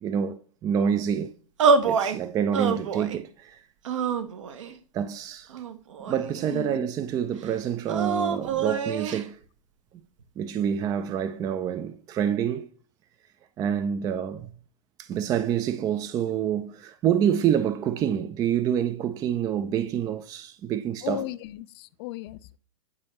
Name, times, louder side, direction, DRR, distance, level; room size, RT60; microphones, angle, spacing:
voice 1, 0.0-1.3 1.8-3.6 4.9-5.5 6.1-9.4 10.4-12.7 13.6-14.5 15.0-21.2, right 9 dB, 20° right, 0.3 m, -27 dB
sound 1, 1.6-2.2 2.5-3.2 3.8-4.8 5.5-6.5 7.9-9.2, right 5 dB, 65° right, 0.8 m, -26 dB
voice 2, 6.5-6.9 21.0-22.6, left 15 dB, 45° left, 0.4 m, -36 dB
8.8 x 4.1 x 3.0 m
figure-of-eight pair, 100°, 17 cm